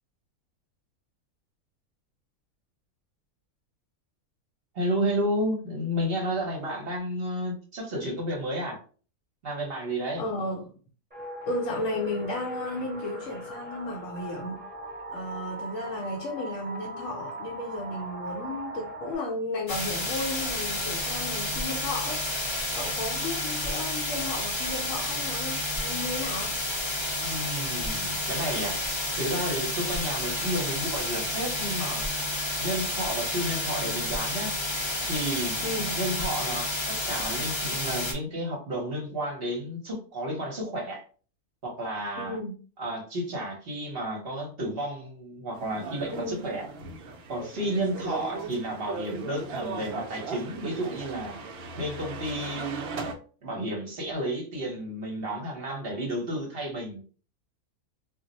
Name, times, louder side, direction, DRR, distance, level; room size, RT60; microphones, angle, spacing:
voice 1, 4.7-8.8 9.4-10.2 27.2-28.8 29.2-32.0 32.6-34.6 35.1-35.6 35.9-41.0 41.6-42.4 42.8-46.7 47.3-51.4 51.8-52.8 53.4-57.0, right 1 dB, 50° right, 0.9 m, -32 dB
voice 2, 10.2-10.7 11.4-14.6 15.1-22.2 22.7-26.6 35.6-36.0 42.2-42.6 46.1-46.5, left 2 dB, 65° left, 0.9 m, -34 dB
sound 1, 11.1-19.2, right 1 dB, 10° right, 0.9 m, -39 dB
sound 2, 19.7-38.1, left 1 dB, 25° left, 0.6 m, -30 dB
sound 3, 45.5-53.1, right 3 dB, 70° right, 0.6 m, -37 dB
2.5 x 2.0 x 3.9 m
omnidirectional pair, 1.5 m